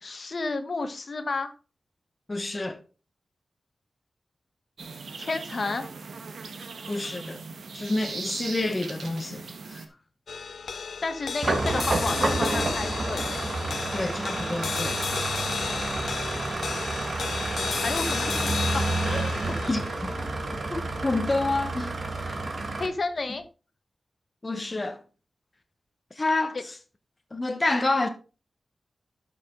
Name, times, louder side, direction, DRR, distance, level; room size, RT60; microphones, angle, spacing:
voice 1, 0.0-1.5 5.2-5.9 11.0-13.2 17.7-19.3 19.6-19.8 22.8-23.4 26.5-26.6, left 3 dB, 55° left, 1.3 m, -31 dB
voice 2, 2.3-2.8 6.9-7.4 7.7-9.8 13.9-15.0 19.7-20.1 20.7-21.9 22.2-22.4 24.4-25.0 26.2-26.6 27.3-28.1, left 2 dB, 30° left, 1.1 m, -28 dB
sound 1, 4.8-9.9, right 4 dB, 85° right, 1.3 m, -39 dB
sound 2, 10.3-22.8, left 5 dB, 80° left, 0.5 m, -34 dB
sound 3, 11.4-22.9, right 2 dB, 55° right, 1.7 m, -29 dB
12.0 x 6.0 x 3.8 m
wide cardioid pair, 70°, 0 cm